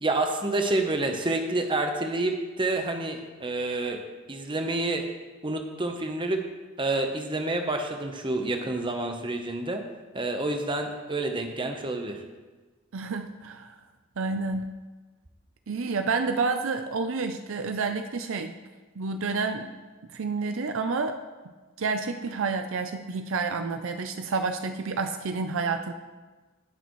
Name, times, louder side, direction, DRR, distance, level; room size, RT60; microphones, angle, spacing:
voice 1, 0.0-4.0 4.3-5.0 5.4-6.5 6.8-9.8 10.1-12.2, right 2 dB, 25° right, 4 dB, 0.9 m, -28 dB
voice 2, 12.9-13.8 14.2-14.7 15.7-18.5 19.0-19.7 20.1-21.2 21.8-25.9, right 4 dB, 65° right, 7 dB, 0.5 m, -29 dB
18.5 x 6.7 x 3.1 m, 1.3 s
head